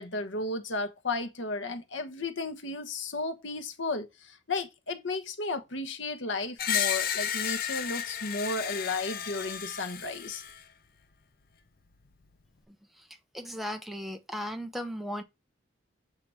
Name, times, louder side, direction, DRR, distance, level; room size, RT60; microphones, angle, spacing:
voice 1, 0.0-10.4, left 3 dB, 75° left, 1.0 m, -34 dB
Screech, 6.6-10.6, left 9 dB, 50° left, 0.7 m, -32 dB
voice 2, 13.3-15.2, equal, ahead, 0.8 m, -36 dB
7.5 x 2.9 x 6.1 m
head